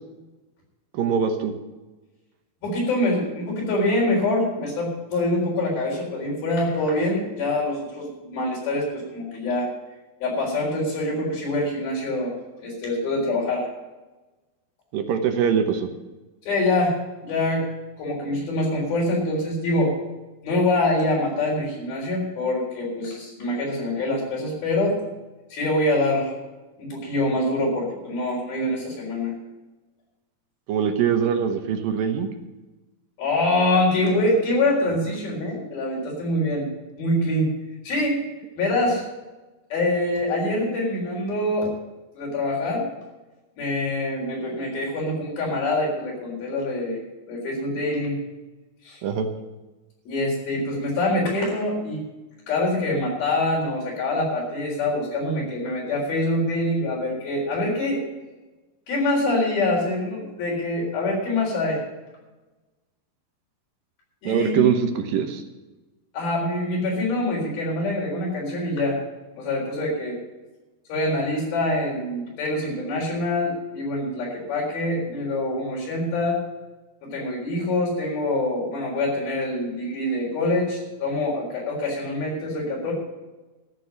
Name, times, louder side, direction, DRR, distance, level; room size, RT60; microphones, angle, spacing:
voice 1, 0.9-1.5 14.9-15.9 30.7-32.3 49.0-49.3 64.3-65.4, right 7 dB, 75° right, 6 dB, 2.7 m, -22 dB
voice 2, 2.6-9.7 10.2-12.3 12.6-13.7 16.5-17.0 17.2-17.7 18.0-20.0 20.4-25.0 25.5-26.3 26.8-29.3 33.2-36.7 37.0-37.5 37.8-38.2 38.6-39.0 39.7-41.7 42.2-42.9 43.6-47.0 47.3-48.2 48.8-49.0 50.1-52.1 52.5-58.0 58.9-61.8 64.2-64.6 66.1-69.0 69.3-70.2 70.9-76.4 77.0-82.9, left 1 dB, 75° left, -3 dB, 6.0 m, -25 dB
13.5 x 6.8 x 8.9 m, 1.1 s
omnidirectional pair, 4.3 m